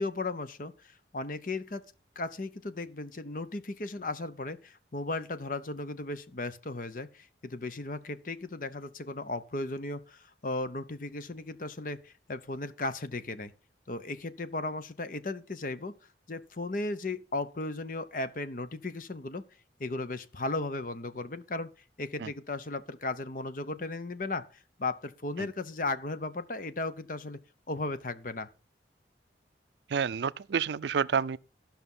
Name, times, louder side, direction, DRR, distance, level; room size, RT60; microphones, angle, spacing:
voice 1, 0.0-1.8 2.2-13.5 13.9-15.9 16.3-19.4 19.8-21.7 22.0-27.4 27.7-28.5, left 2 dB, 45° left, 0.8 m, -36 dB
voice 2, 29.9-31.4, right 6 dB, 70° right, 0.4 m, -29 dB
13.5 x 5.9 x 5.5 m
head